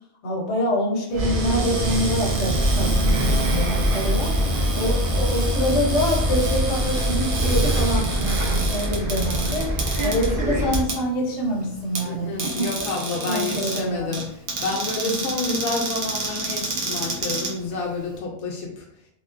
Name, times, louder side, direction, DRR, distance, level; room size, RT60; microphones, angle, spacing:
voice 1, 0.2-4.3 4.7-9.7 10.0-12.7 13.2-14.2 15.0-15.2, equal, 55° left, -2 dB, 1.0 m, -26 dB
Bus, 1.1-10.8, equal, 55° right, 0.6 m, -23 dB
Cupboard open or close, 1.1-18.2, right 3 dB, 75° right, 1.2 m, -31 dB
voice 2, 3.0-3.7 4.1-4.7 12.0-18.9, left 3 dB, 80° left, -1 dB, 1.0 m, -29 dB
3.4 x 2.4 x 2.4 m, 0.76 s
omnidirectional pair, 1.4 m